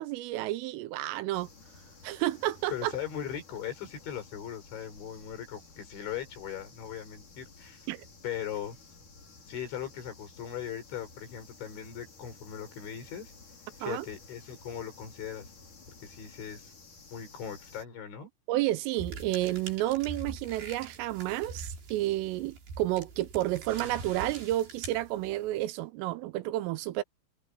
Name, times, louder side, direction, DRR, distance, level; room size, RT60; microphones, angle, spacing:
voice 1, 0.0-1.5 2.0-2.9 7.9-8.1 13.8-14.1 18.5-27.0, right 16 dB, 85° right, 3.4 m, -31 dB
sound 1, 1.3-17.8, left 4 dB, 40° left, 6.3 m, -54 dB
voice 2, 2.7-7.8 8.2-8.8 9.5-13.3 13.8-15.5 16.0-16.7 17.1-18.3, left 9 dB, 65° left, 7.6 m, -39 dB
sound 2, 19.0-25.6, right 4 dB, 55° right, 7.5 m, -43 dB
omnidirectional pair, 5.8 m